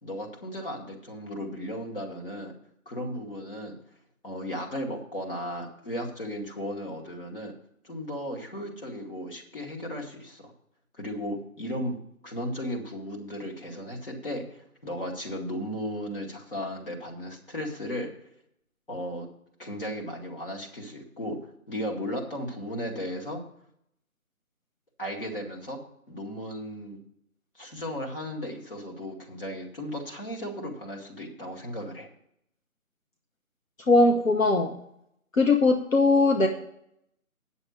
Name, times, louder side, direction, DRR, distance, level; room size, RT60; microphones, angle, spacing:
voice 1, 0.0-2.5 2.9-3.8 4.2-7.5 7.8-10.5 11.0-12.0 12.2-18.1 18.9-19.3 19.6-21.4 21.7-23.4 25.0-25.8 26.1-27.0 27.5-32.1, equal, 40° left, 0 dB, 2.2 m, -35 dB
voice 2, 33.9-34.8 35.4-36.5, left 3 dB, 65° left, 3 dB, 1.2 m, -20 dB
9.4 x 7.0 x 6.4 m, 0.74 s
figure-of-eight pair, 175°, 43 cm